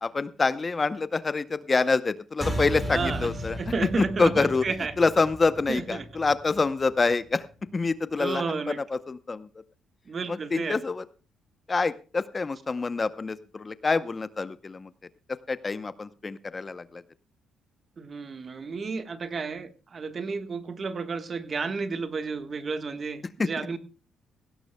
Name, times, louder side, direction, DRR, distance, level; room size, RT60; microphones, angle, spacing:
voice 1, 0.0-3.6 4.0-4.6 5.0-7.4 7.7-9.5 10.3-11.0 11.7-14.9 15.5-17.0 23.4-23.7, left 4 dB, 30° left, 15 dB, 0.7 m, -26 dB
sound 1, 2.4-7.2, equal, 10° right, 4.8 m, -35 dB
voice 2, 2.9-4.9 5.7-6.0 8.2-8.8 10.1-10.8 18.0-23.8, right 4 dB, 40° right, 10 dB, 1.3 m, -32 dB
17.5 x 17.0 x 2.2 m, 0.33 s
cardioid pair, 90°, 0 cm